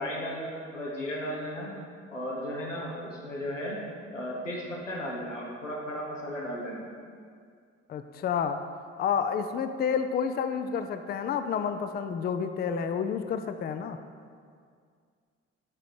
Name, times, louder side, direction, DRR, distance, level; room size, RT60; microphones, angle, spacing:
voice 1, 0.0-1.7 2.1-3.8 4.1-6.9, equal, 90° left, -3 dB, 0.9 m, -35 dB
voice 2, 7.9-8.6 9.0-14.0, left 7 dB, 25° left, 9 dB, 0.4 m, -29 dB
7.5 x 5.1 x 4.6 m, 2.2 s
figure-of-eight pair, 45°, 37 cm